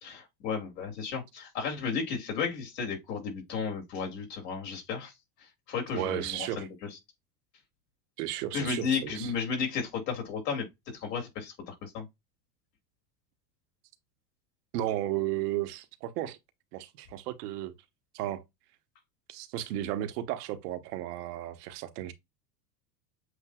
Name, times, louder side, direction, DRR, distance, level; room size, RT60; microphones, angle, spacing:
voice 1, 0.0-5.1 5.7-7.0 8.5-10.7 10.9-12.1, left 6 dB, 75° left, 2.6 m, -33 dB
voice 2, 5.9-6.7 8.2-9.3 14.7-16.4 16.7-17.7 18.1-18.4 19.3-22.1, right 13 dB, 65° right, 1.0 m, -34 dB
7.8 x 2.6 x 2.3 m
hypercardioid pair, 105°, 50 cm